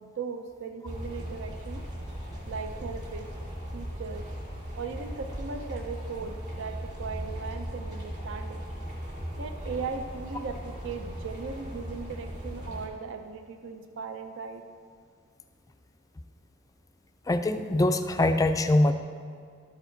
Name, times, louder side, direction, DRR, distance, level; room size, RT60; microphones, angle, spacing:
voice 1, 0.0-1.8 2.5-3.3 3.7-4.3 4.8-8.7 9.4-14.6, right 5 dB, 65° right, 7 dB, 0.5 m, -38 dB
sound 1, 0.8-12.9, equal, 40° right, 2.1 m, -38 dB
voice 2, 17.3-18.9, left 1 dB, 15° left, 8 dB, 0.4 m, -23 dB
12.5 x 4.8 x 4.5 m, 2.1 s
head